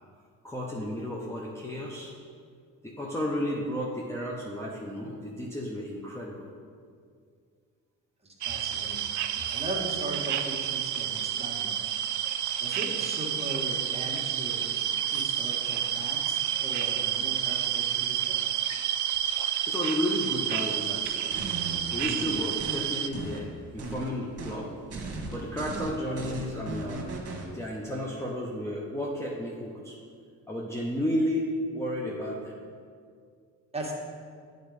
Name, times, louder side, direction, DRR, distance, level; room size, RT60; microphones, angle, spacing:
voice 1, 0.4-2.1 2.8-6.5 9.3-9.4 19.7-21.4 21.9-24.7 25.3-27.2 27.5-30.0 30.5-32.5, equal, 10° left, -4 dB, 0.9 m, -32 dB
voice 2, 8.2-9.1 9.5-11.8 12.6-18.4 33.7-34.0, right 1 dB, 20° right, -3 dB, 1.6 m, -38 dB
sound 1, 8.4-23.1, right 10 dB, 70° right, 0.5 m, -30 dB
sound 2, 21.0-22.8 23.1-24.1 24.4-24.6 24.9-27.5, right 2 dB, 50° right, 1.4 m, -37 dB
8.9 x 4.0 x 4.9 m, 2.2 s
cardioid pair, 85°, 31 cm